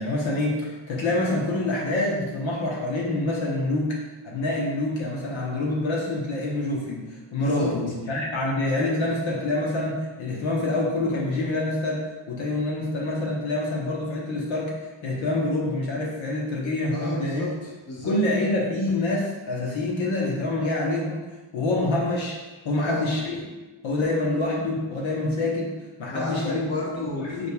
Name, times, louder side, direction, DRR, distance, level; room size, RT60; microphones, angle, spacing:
voice 1, 0.0-4.0 4.2-14.7 15.0-17.4 18.0-21.2 21.5-22.4 22.6-23.4 23.8-25.7 26.0-26.6 27.1-27.5, left 2 dB, 75° left, -3 dB, 1.1 m, -26 dB
voice 2, 7.3-7.7 16.9-18.2 22.7-23.0 26.1-27.4, left 2 dB, 30° left, -4 dB, 1.1 m, -32 dB
5.0 x 4.3 x 2.3 m, 1.2 s
cardioid pair, 100°, 48 cm